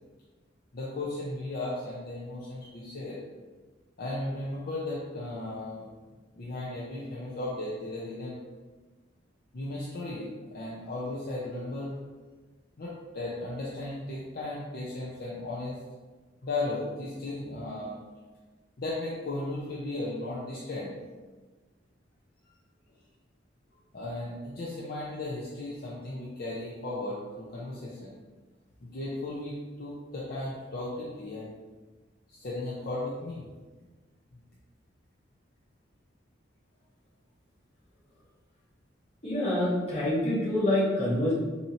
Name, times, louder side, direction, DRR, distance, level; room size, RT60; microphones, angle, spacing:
voice 1, 0.7-3.2 4.0-5.9 6.3-8.4 9.5-12.0 12.8-15.8 16.4-18.0 18.8-21.0 23.9-28.2 28.8-31.6 32.3-33.5 34.3-34.4, left 2 dB, 50° left, -6 dB, 0.6 m, -36 dB
voice 2, 39.2-41.3, left 1 dB, 35° left, -7 dB, 1.2 m, -26 dB
4.3 x 2.7 x 2.7 m, 1.3 s
head